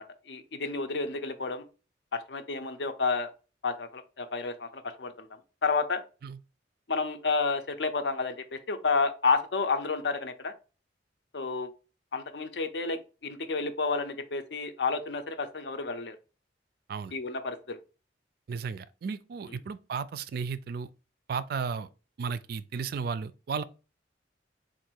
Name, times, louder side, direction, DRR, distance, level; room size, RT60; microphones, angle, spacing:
voice 1, 0.0-1.6 2.1-3.3 3.6-5.3 5.6-6.0 6.9-10.5 11.3-11.7 12.1-13.0 13.2-16.2 17.1-17.8, left 4 dB, 70° left, 0.6 m, -30 dB
voice 2, 18.5-20.9 21.3-21.9 22.2-23.6, right 5 dB, 55° right, 0.3 m, -34 dB
3.9 x 2.6 x 4.4 m
head